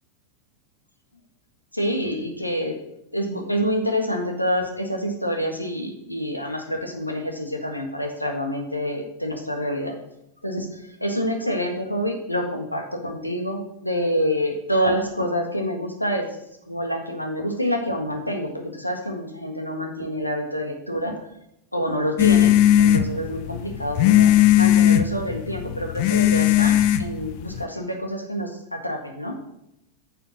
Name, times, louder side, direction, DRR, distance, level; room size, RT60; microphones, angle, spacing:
voice 1, 1.7-2.8 3.1-10.0 10.4-16.4 16.7-21.1 21.7-29.4, equal, 85° left, 4 dB, 1.6 m, -27 dB
sound 1, 22.2-27.6, left 12 dB, 45° left, 0.6 m, -18 dB
9.6 x 6.8 x 6.3 m, 0.80 s
figure-of-eight pair, 90°, 0 cm